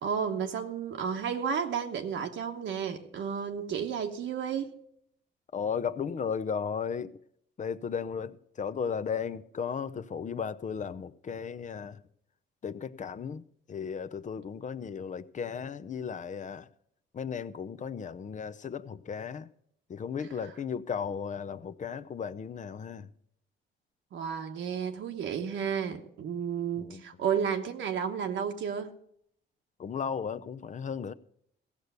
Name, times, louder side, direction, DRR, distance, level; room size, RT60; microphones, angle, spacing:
voice 1, 0.0-4.8 24.1-28.9, right 7 dB, 70° right, 1.1 m, -32 dB
voice 2, 5.5-7.1 7.6-12.0 12.6-16.7 17.1-19.5 19.9-23.1 26.8-27.0 29.8-31.1, left 6 dB, 40° left, 0.6 m, -35 dB
15.5 x 6.7 x 6.7 m
cardioid pair, 90°, 20 cm